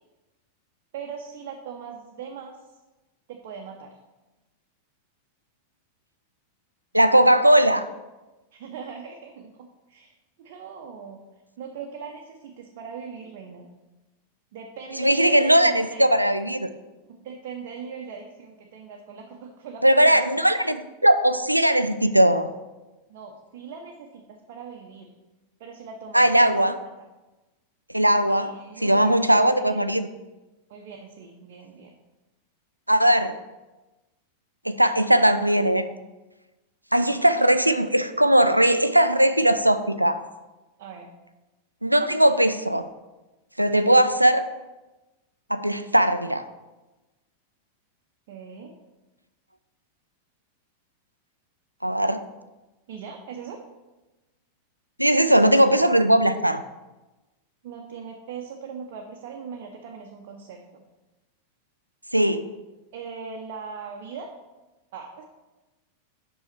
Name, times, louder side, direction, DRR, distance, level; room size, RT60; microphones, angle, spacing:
voice 1, 0.9-2.6 3.3-4.0 8.5-9.6 9.9-10.1 10.4-11.2 11.6-13.7 14.5-16.2 17.1-20.4 23.1-25.1 25.6-26.9 28.3-29.9 30.7-32.0 37.3-37.5 40.8-41.1 43.6-43.9 48.3-48.7 52.9-53.6 57.6-60.8 62.9-64.3 64.9-65.2, right 6 dB, 50° right, 2 dB, 0.7 m, -40 dB
voice 2, 6.9-7.9 15.0-16.7 19.8-22.5 26.1-26.8 27.9-28.5 28.8-30.1 32.9-33.4 34.7-35.8 36.9-40.2 41.8-42.8 43.6-44.4 45.5-46.4 51.8-52.2 55.0-56.6 62.1-62.5, right 1 dB, 90° right, 11 dB, 0.3 m, -19 dB
5.6 x 5.5 x 4.3 m, 1.1 s
figure-of-eight pair, 90°, 0 cm